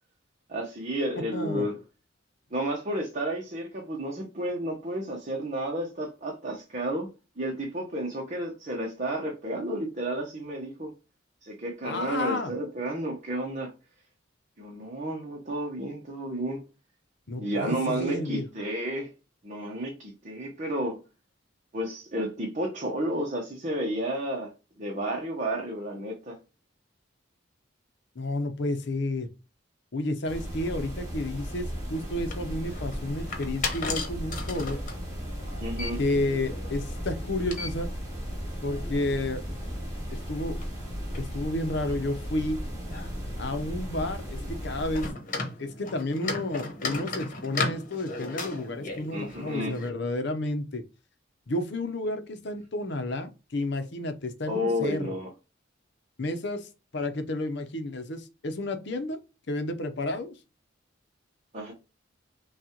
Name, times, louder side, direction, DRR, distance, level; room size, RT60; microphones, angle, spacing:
voice 1, 0.5-1.8 2.5-7.1 7.4-10.9 11.4-13.7 14.6-16.6 17.4-19.1 19.4-21.0 21.7-24.5 24.8-26.4 35.6-36.0 49.1-49.7 54.4-55.3 61.5-61.7, right 1 dB, 40° right, 0.9 m, -31 dB
voice 2, 1.3-1.7 11.8-12.5 17.3-18.4 28.2-29.3 29.9-34.8 36.0-37.9 38.6-39.4 40.3-40.6 41.2-42.6 43.4-45.2 45.6-50.8 51.5-55.2 56.2-59.2 59.5-60.3, left 2 dB, 60° left, 0.7 m, -31 dB
sound 1, 30.3-45.1, equal, 20° right, 2.1 m, -36 dB
sound 2, 31.9-49.9, left 3 dB, 45° left, 1.1 m, -38 dB
6.1 x 2.4 x 2.9 m
head